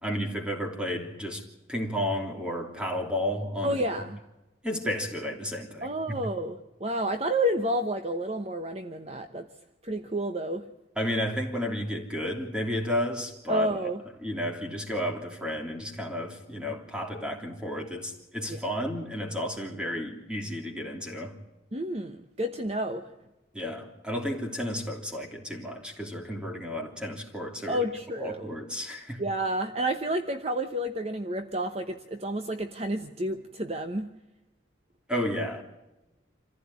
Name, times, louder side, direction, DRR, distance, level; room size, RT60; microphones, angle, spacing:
voice 1, 0.0-3.8 4.6-6.2 11.0-13.8 14.2-21.4 23.5-27.9 28.2-29.2 35.1-35.6, equal, 5° right, 3.2 m, -32 dB
voice 2, 3.6-4.2 5.8-9.5 9.8-10.7 13.5-14.0 18.5-18.6 21.7-23.1 27.7-28.6 29.2-34.1, right 1 dB, 30° right, 1.0 m, -30 dB
27.0 x 15.5 x 9.7 m
head